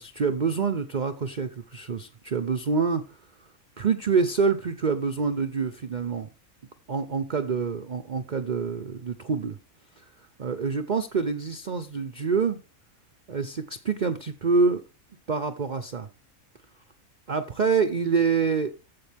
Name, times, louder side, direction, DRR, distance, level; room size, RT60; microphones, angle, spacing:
voice 1, 0.0-3.0 3.8-6.3 6.9-9.6 10.4-12.6 13.3-14.8 15.3-16.1 17.3-18.7, right 5 dB, 40° right, 0.7 m, -26 dB
14.5 x 5.2 x 3.5 m
omnidirectional pair, 1.5 m